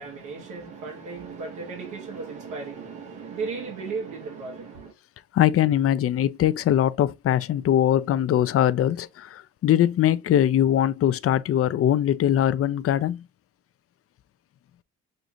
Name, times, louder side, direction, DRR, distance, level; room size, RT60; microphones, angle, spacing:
voice 1, 0.0-4.9, right 4 dB, 85° right, 1.3 m, -35 dB
voice 2, 5.3-13.2, left 11 dB, 50° left, 0.5 m, -21 dB
6.5 x 2.4 x 2.7 m
cardioid pair, 90°, 30 cm